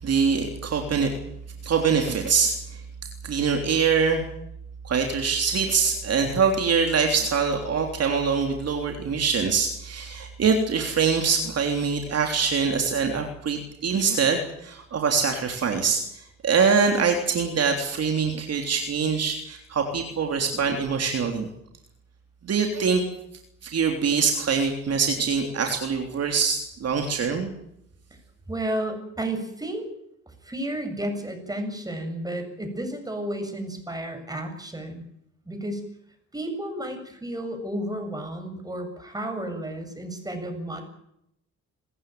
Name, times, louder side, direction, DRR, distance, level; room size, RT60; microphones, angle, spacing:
voice 1, 0.0-1.2 1.6-2.8 3.2-4.2 4.8-21.5 22.4-23.0 23.6-27.5, right 5 dB, 55° right, 3 dB, 3.4 m, -24 dB
voice 2, 28.5-29.8 30.3-35.0 35.5-35.8 36.3-40.8, right 1 dB, 10° right, 6 dB, 7.5 m, -32 dB
27.0 x 15.0 x 9.3 m, 0.77 s
cardioid pair, 90°, 30 cm